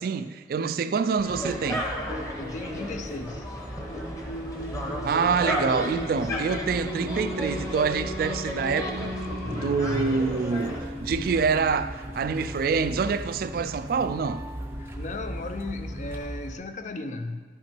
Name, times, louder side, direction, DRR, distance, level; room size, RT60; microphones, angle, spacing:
voice 1, 0.0-1.9 5.0-9.1 9.5-14.5, right 5 dB, 50° right, 0.3 m, -26 dB
sound 1, 1.2-10.8, equal, 15° left, 1.0 m, -34 dB
sound 2, 1.2-16.5, right 1 dB, 15° right, 0.6 m, -39 dB
voice 2, 2.4-3.5 9.4-10.3 15.0-17.4, left 2 dB, 40° left, 0.5 m, -35 dB
Singing, 3.9-15.6, equal, 65° left, 2.0 m, -39 dB
11.0 x 5.8 x 4.4 m
head